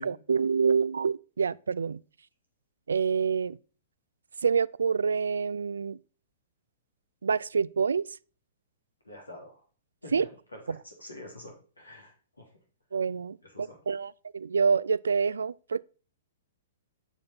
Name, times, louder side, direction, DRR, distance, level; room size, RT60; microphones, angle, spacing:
voice 1, 0.0-2.0 2.9-3.6 4.4-6.0 7.2-8.1 10.1-10.3 10.7-10.8 12.9-15.8, right 6 dB, 75° right, 0.3 m, -27 dB
voice 2, 9.0-9.6 10.0-12.5 13.4-13.8, left 1 dB, 90° left, 3.2 m, -47 dB
8.9 x 7.0 x 4.1 m
figure-of-eight pair, 110°, 0 cm